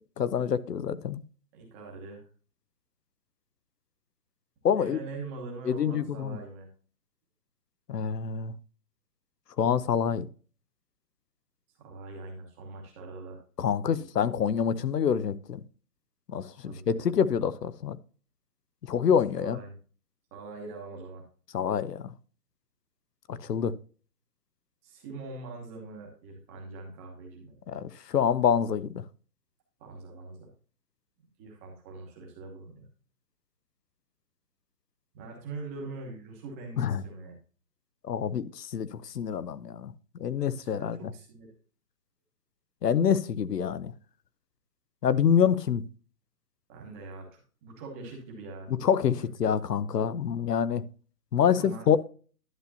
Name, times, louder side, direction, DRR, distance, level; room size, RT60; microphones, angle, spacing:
voice 1, 0.2-1.2 4.6-5.0 5.7-6.4 7.9-8.5 9.6-10.3 13.6-15.6 16.3-18.0 18.9-19.6 21.5-22.1 23.3-23.7 27.7-29.0 36.8-37.0 38.1-39.9 40.2-41.0 42.8-43.9 45.0-45.8 48.8-50.8 51.3-52.0, left 7 dB, 85° left, 0.9 m, -26 dB
voice 2, 1.5-2.3 4.8-6.7 11.8-13.4 13.9-14.1 16.6-17.1 19.4-19.8 20.3-21.2 24.8-27.6 29.8-30.5 31.4-32.9 35.1-37.3 40.6-41.5 46.7-48.7 51.4-52.0, right 3 dB, 10° right, 0.9 m, -43 dB
11.0 x 6.9 x 2.7 m
hypercardioid pair, 165°, 47 cm